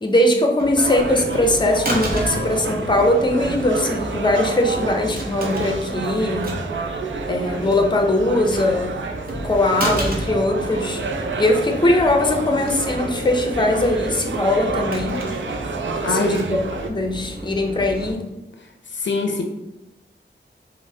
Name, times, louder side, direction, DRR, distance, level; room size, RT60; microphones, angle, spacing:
voice 1, 0.0-6.5 7.3-8.9 9.4-11.0 11.4-15.2 16.0-18.3, left 1 dB, 25° left, 3 dB, 0.5 m, -20 dB
sound 1, 0.6-18.1, right 1 dB, 50° right, 0.7 m, -31 dB
sound 2, 0.8-16.9, right 4 dB, 75° right, 0.4 m, -30 dB
voice 2, 16.0-16.5 18.9-19.4, left 3 dB, 70° left, 3 dB, 0.5 m, -23 dB
5.1 x 2.0 x 2.7 m, 0.96 s
wide cardioid pair, 60°, 20 cm